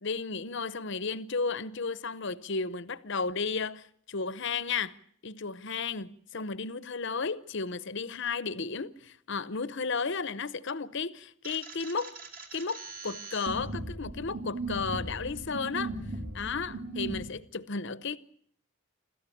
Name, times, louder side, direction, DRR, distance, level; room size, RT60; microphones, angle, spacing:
voice 1, 0.0-5.0 5.2-12.1 12.5-15.9 16.3-18.2, left 4 dB, 55° left, 0.8 m, -33 dB
sound 1, 11.4-17.2, right 2 dB, 40° right, 3.5 m, -38 dB
27.0 x 14.0 x 8.5 m
head